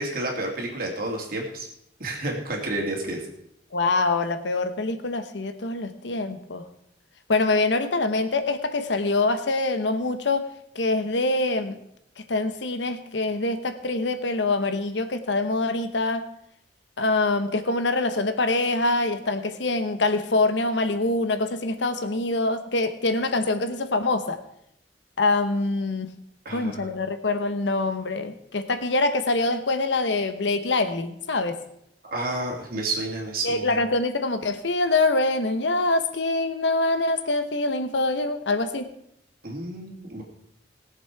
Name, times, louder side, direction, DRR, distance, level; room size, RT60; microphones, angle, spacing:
voice 1, 0.0-1.7 2.0-3.2 26.4-26.9 32.0-33.8 39.4-40.2, right 2 dB, 55° right, 0 dB, 2.8 m, -30 dB
voice 2, 3.7-6.6 7.3-11.8 12.2-16.3 17.0-24.4 25.2-26.1 26.5-31.6 33.4-38.9, left 2 dB, 85° left, 9 dB, 1.0 m, -25 dB
20.5 x 7.3 x 4.6 m, 0.75 s
head